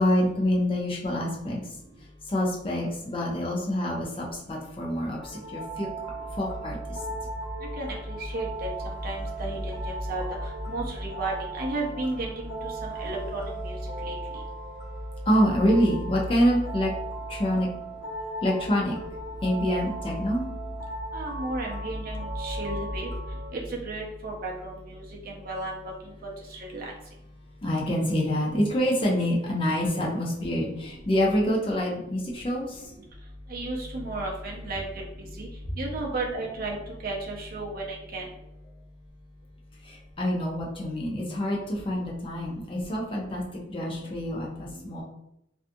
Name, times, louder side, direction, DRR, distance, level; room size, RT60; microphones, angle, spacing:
voice 1, 0.0-1.6 2.3-5.9 6.4-6.8 15.3-16.9 17.3-17.7 18.4-19.0 19.4-20.5 27.6-32.8 39.8-43.4 43.7-45.0, equal, 25° left, -3 dB, 0.5 m, -26 dB
sound 1, 5.2-23.5, right 1 dB, 45° left, 1.0 m, -36 dB
voice 2, 7.8-8.5 8.8-10.2 10.7-14.1 21.1-23.1 23.5-25.9 26.7-26.8 33.5-34.8 35.2-35.5 35.8-36.8 37.0-38.2, right 2 dB, 50° right, -2 dB, 0.6 m, -33 dB
2.6 x 2.3 x 2.5 m, 0.80 s
head